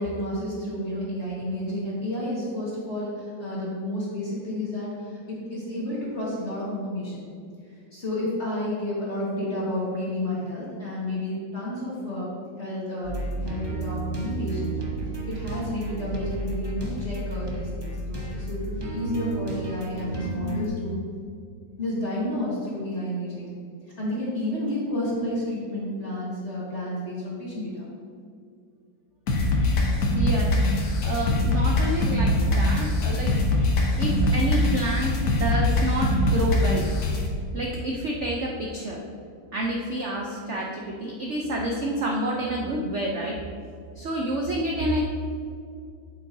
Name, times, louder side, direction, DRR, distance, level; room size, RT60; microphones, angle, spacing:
voice 1, 0.0-7.3 7.7-12.3 12.6-14.8 15.3-21.0 21.8-23.5 24.0-27.9, left 1 dB, 40° left, -7 dB, 1.8 m, -31 dB
sound 1, 13.0-20.7, right 2 dB, 30° right, 0.4 m, -32 dB
sound 2, 29.3-37.3, left 1 dB, 60° left, 1.4 m, -23 dB
voice 2, 30.1-30.6 31.0-33.3 34.0-36.8 37.5-39.0 39.5-43.3 44.0-45.0, right 1 dB, 60° right, -1 dB, 0.7 m, -28 dB
8.5 x 7.9 x 2.7 m, 2.3 s
omnidirectional pair, 2.0 m